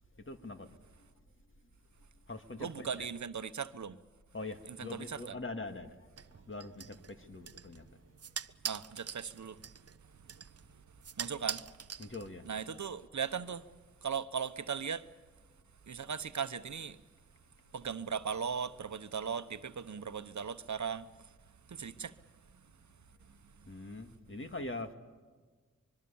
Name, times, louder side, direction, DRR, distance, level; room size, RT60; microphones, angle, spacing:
voice 1, 0.2-0.7 2.3-3.1 4.3-6.0 6.5-7.8 12.0-12.5 13.2-13.3 23.7-24.9, left 2 dB, 40° left, 2.2 m, -43 dB
voice 2, 2.6-4.0 4.7-5.4 8.6-9.6 11.2-11.6 12.4-13.7 14.0-15.1 15.9-17.0 17.7-21.1 21.7-22.2, right 6 dB, 65° right, 1.0 m, -38 dB
sound 1, 6.2-12.6, right 7 dB, 50° right, 0.6 m, -44 dB
24.5 x 22.5 x 7.1 m
cardioid pair, 45°, 30 cm